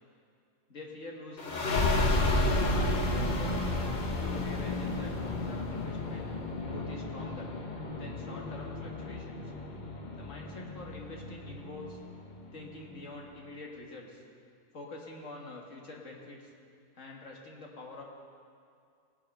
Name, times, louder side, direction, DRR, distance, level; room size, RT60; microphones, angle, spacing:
voice 1, 0.7-3.6 4.1-6.3 6.6-7.5 8.0-9.5 10.2-12.0 12.5-14.2 14.7-16.5 17.0-18.0, left 2 dB, 60° left, -1 dB, 1.9 m, -46 dB
sound 1, 1.4-12.6, left 2 dB, 40° left, 0.9 m, -32 dB
18.0 x 6.5 x 5.4 m, 2.3 s
omnidirectional pair, 1.5 m